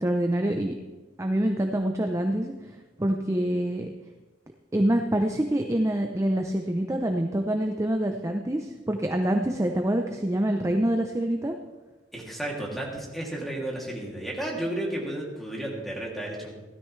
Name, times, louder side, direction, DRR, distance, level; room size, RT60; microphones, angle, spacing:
voice 1, 0.0-0.7 1.2-2.5 3.0-3.9 4.7-11.5, right 1 dB, 15° right, 4 dB, 0.6 m, -26 dB
voice 2, 12.1-16.5, right 1 dB, ahead, -3 dB, 2.7 m, -33 dB
16.5 x 13.0 x 3.3 m, 1.2 s
head